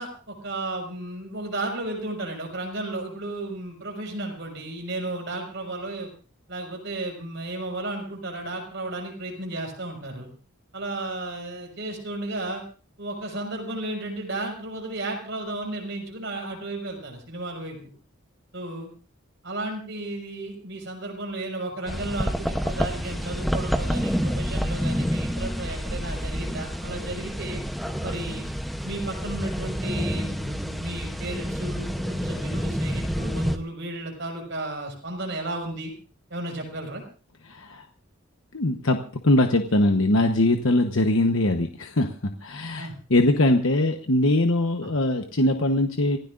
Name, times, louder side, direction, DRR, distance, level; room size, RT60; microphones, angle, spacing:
voice 1, 0.0-6.1 6.5-10.3 10.7-12.6 13.0-17.8 18.5-18.9 19.4-27.6 28.0-28.5 28.8-35.9 36.3-37.0 42.8-42.9 44.8-44.9, right 2 dB, 55° right, 2 dB, 5.5 m, -33 dB
sound 1, 21.9-33.6, equal, ahead, 0.8 m, -28 dB
voice 2, 37.5-37.8 38.5-39.0 39.2-46.2, left 1 dB, 70° left, 5 dB, 1.1 m, -22 dB
27.0 x 16.0 x 2.6 m, 0.37 s
head